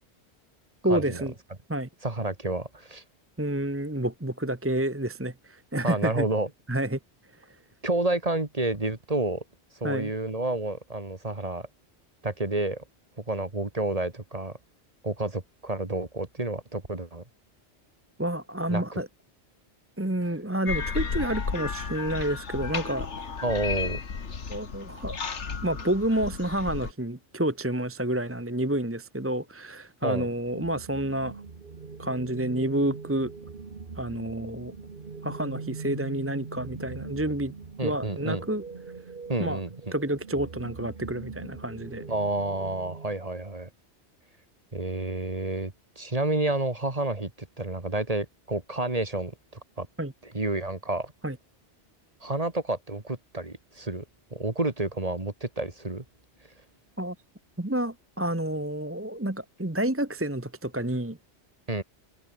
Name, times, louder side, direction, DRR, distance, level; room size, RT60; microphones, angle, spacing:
voice 1, 0.8-1.3 1.7-1.9 3.4-6.3 6.7-7.0 9.8-10.1 18.2-19.1 20.0-23.1 24.5-25.2 25.6-31.4 32.0-33.3 34.0-34.7 35.2-37.5 37.8-38.6 39.4-39.6 39.9-42.1 50.0-50.1 51.2-51.3 57.0-57.1 57.6-61.2, right 1 dB, 10° right, 1.3 m, -29 dB
voice 2, 2.0-3.0 5.8-6.5 7.8-9.4 9.8-11.7 12.2-12.8 13.3-14.6 15.0-17.2 18.7-19.0 23.4-24.0 30.0-30.3 37.8-38.4 39.3-39.7 42.1-43.7 44.7-49.3 49.8-49.9 50.2-51.1 52.2-54.0 54.3-56.0 61.7-61.8, right 2 dB, 35° right, 2.4 m, -29 dB
sound 1, 20.7-26.9, left 5 dB, 90° left, 2.0 m, -33 dB
sound 2, 30.4-43.1, right 4 dB, 50° right, 1.7 m, -41 dB
omnidirectional pair, 1.2 m